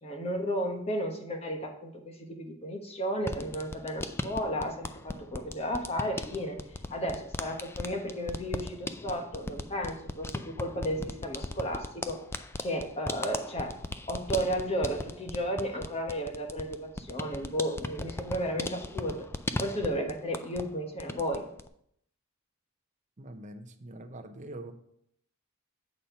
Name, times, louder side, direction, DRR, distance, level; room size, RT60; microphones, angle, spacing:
voice 1, 0.0-6.6 6.9-12.2 12.6-13.7 14.1-19.2 19.6-21.4, equal, 30° left, 3 dB, 1.1 m, -33 dB
sound 1, 3.2-20.7 21.0-21.7, left 2 dB, 10° left, 0.3 m, -38 dB
voice 2, 23.2-24.7, right 1 dB, 35° right, 6 dB, 0.7 m, -44 dB
8.2 x 4.3 x 5.6 m, 0.71 s
head